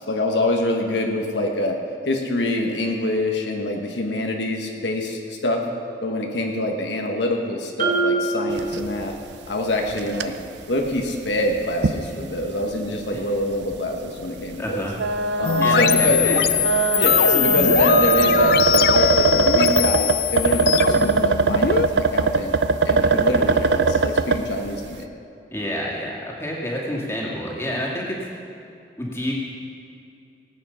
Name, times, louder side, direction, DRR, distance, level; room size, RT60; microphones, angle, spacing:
voice 1, 0.0-1.8 2.0-5.6 6.0-9.1 9.5-10.3 10.7-14.9 15.4-16.5 16.9-22.5 22.8-25.1, left 1 dB, 90° left, 2 dB, 1.3 m, -25 dB
Marimba xylophone, 7.8-9.6, right 3 dB, 50° right, 3.0 m, -25 dB
sound 1, 8.5-9.0 9.3-9.4 9.9-10.3 10.9-11.0 11.8-12.0 12.4-12.5 13.6-13.7 14.9-24.5, right 4 dB, 85° right, 0.5 m, -20 dB
voice 2, 14.6-15.0 15.6-16.4 25.5-28.2 29.0-29.3, equal, 15° left, -3 dB, 2.2 m, -28 dB
sound 2, 15.4-21.9, left 9 dB, 55° left, 0.3 m, -21 dB
18.5 x 8.4 x 5.7 m, 2.6 s
head